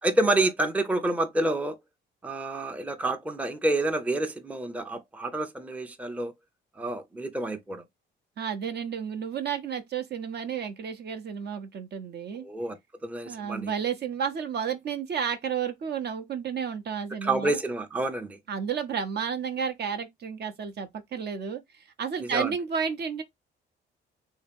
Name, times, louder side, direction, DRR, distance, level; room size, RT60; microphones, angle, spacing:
voice 1, 0.0-1.8 2.2-6.3 6.8-7.8 12.4-13.7 17.2-18.4 22.2-22.5, right 2 dB, 5° right, 0.5 m, -28 dB
voice 2, 8.4-12.5 13.3-17.6 18.5-21.6 22.0-23.2, right 7 dB, 55° right, 0.7 m, -32 dB
3.2 x 2.8 x 3.4 m
cardioid pair, 90°, 20 cm